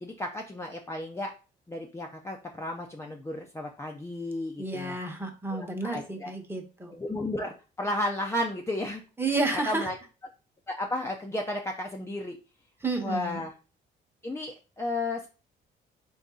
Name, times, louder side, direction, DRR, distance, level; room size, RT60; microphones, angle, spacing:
voice 1, 0.0-1.3 1.7-5.0 5.5-6.3 6.9-9.0 9.3-10.0 10.7-12.4 13.0-13.5 14.2-15.3, left 1 dB, 15° left, 1 dB, 0.5 m, -33 dB
voice 2, 4.6-6.9 9.2-9.9 12.8-13.4, right 3 dB, 10° right, 2 dB, 1.0 m, -31 dB
3.8 x 2.6 x 3.7 m, 0.34 s
cardioid pair, 90°, 20 cm